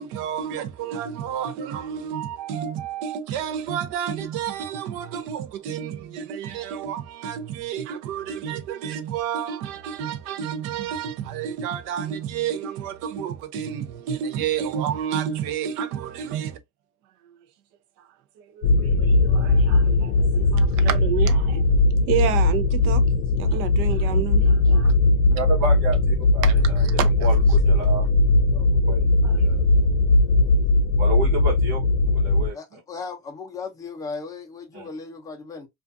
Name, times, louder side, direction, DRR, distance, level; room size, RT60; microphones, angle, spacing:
voice 1, 0.0-16.6 18.0-18.1 18.4-21.6 22.1-24.9 26.4-27.1 29.2-29.6, right 9 dB, 65° right, 0.6 m, -30 dB
sound 1, 18.6-32.5, left 2 dB, 85° left, 0.5 m, -19 dB
voice 2, 25.3-26.9 27.2-28.1 28.5-29.1 29.4-29.6 31.0-32.8 34.7-34.9, right 2 dB, 80° right, 1.0 m, -31 dB
voice 3, 32.5-35.7, left 4 dB, 10° left, 0.5 m, -36 dB
2.4 x 2.4 x 2.5 m
cardioid pair, 155°, 35 cm